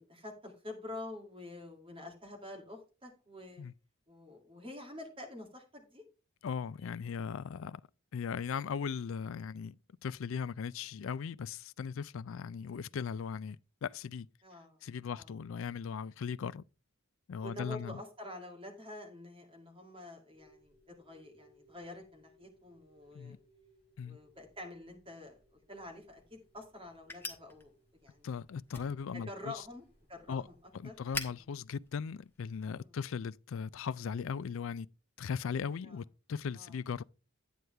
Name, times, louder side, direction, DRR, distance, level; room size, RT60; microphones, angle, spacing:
voice 1, 0.0-3.6 4.1-6.0 10.8-10.9 14.4-14.8 15.2-15.3 17.4-23.4 24.0-27.7 28.0-28.3 29.1-30.5 30.8-30.9 32.8-33.0 35.8-36.0 36.5-36.8, left 2 dB, 25° right, 2.3 m, -48 dB
voice 2, 6.4-7.8 8.1-9.7 10.0-14.3 14.8-16.6 17.3-18.0 23.1-23.4 24.0-24.2 28.2-29.6 30.3-30.5 30.7-34.9 35.2-37.0, left 6 dB, 65° left, 0.4 m, -38 dB
sound 1, 20.3-32.0, equal, 25° left, 4.0 m, -68 dB
sound 2, 25.7-32.9, left 2 dB, 10° left, 1.0 m, -48 dB
9.3 x 9.3 x 3.3 m
head